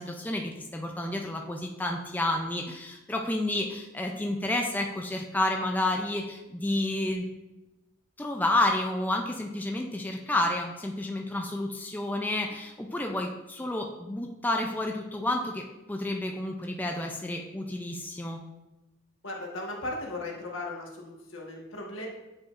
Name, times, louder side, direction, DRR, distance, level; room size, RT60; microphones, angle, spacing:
voice 1, 0.0-7.3 8.2-18.4, left 1 dB, 10° left, 1 dB, 0.4 m, -30 dB
voice 2, 19.2-22.1, left 2 dB, 80° left, -1 dB, 1.3 m, -37 dB
8.4 x 4.9 x 2.5 m, 1.0 s
head